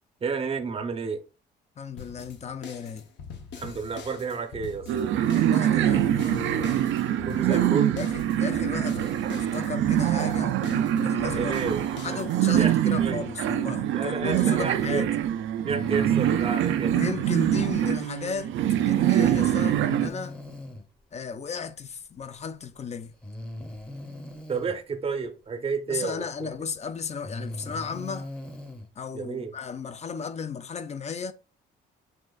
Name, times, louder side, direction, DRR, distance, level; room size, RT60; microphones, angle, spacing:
voice 1, 0.2-1.2 3.6-4.9 7.3-8.0 11.3-11.8 12.5-13.2 13.9-15.0 15.6-16.9 24.5-26.5 29.1-29.5, right 5 dB, 30° right, 0.6 m, -31 dB
voice 2, 1.8-3.1 5.3-6.9 7.5-9.0 9.3-11.7 12.0-15.1 16.9-18.5 18.9-20.4 21.1-23.1 25.9-28.3 29.0-31.3, left 6 dB, 35° left, 0.5 m, -35 dB
sound 1, 2.0-12.7, left 6 dB, 65° left, 0.8 m, -43 dB
sound 2, 4.9-20.1, right 11 dB, 75° right, 0.4 m, -24 dB
Breathing, 15.7-17.3 19.2-20.8 22.2-22.3 23.2-24.8 26.3-26.4 27.1-28.9, left 1 dB, 5° left, 0.7 m, -39 dB
6.3 x 2.4 x 2.3 m
cardioid pair, 90°, 20 cm